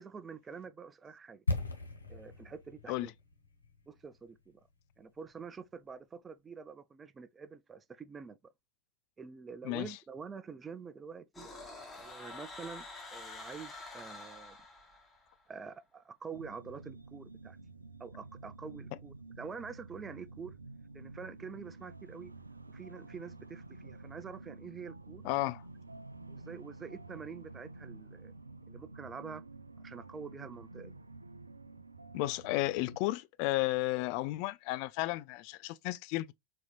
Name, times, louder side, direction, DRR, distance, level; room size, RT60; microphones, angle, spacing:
voice 1, 0.0-1.4 2.1-3.1 3.9-4.6 5.0-8.5 9.2-11.5 11.9-12.9 13.1-14.6 15.5-17.6 18.0-20.6 20.9-22.3 22.7-25.2 26.3-28.3 28.7-29.4 29.8-30.9, right 5 dB, 15° right, 0.5 m, -46 dB
sound 1, 1.5-5.4 5.7-5.8, left 3 dB, 80° left, 1.0 m, -39 dB
voice 2, 9.6-10.0 25.2-25.6 32.1-36.3, left 19 dB, 45° left, 0.4 m, -33 dB
sound 2, 11.3-15.3, left 3 dB, 15° left, 1.6 m, -47 dB
sound 3, 16.3-33.0, right 3 dB, 80° right, 0.4 m, -50 dB
4.3 x 3.9 x 2.4 m
figure-of-eight pair, 90°, 0 cm